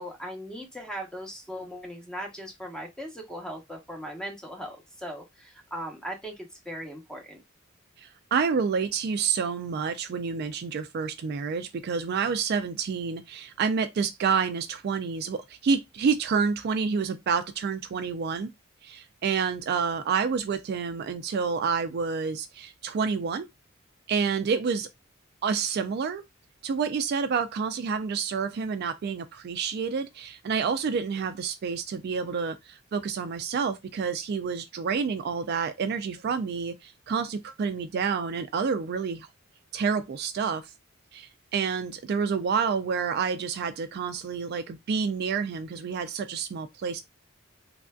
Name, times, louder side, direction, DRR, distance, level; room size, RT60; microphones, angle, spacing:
voice 1, 0.0-7.4, equal, 5° left, 0.8 m, -38 dB
voice 2, 8.0-18.5 18.8-23.5 24.1-24.9 25.4-26.2 26.6-39.3 39.7-40.7 41.1-47.1, right 5 dB, 55° right, 0.3 m, -28 dB
3.2 x 2.5 x 2.3 m
head